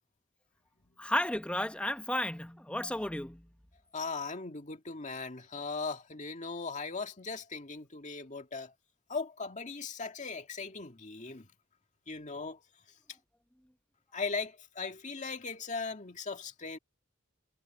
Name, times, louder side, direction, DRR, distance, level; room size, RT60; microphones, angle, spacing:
voice 1, 1.0-3.5, left 1 dB, 5° left, 0.9 m, -33 dB
voice 2, 3.9-8.7 9.1-11.5 12.1-12.6 14.1-16.8, left 4 dB, 35° left, 2.0 m, -38 dB
head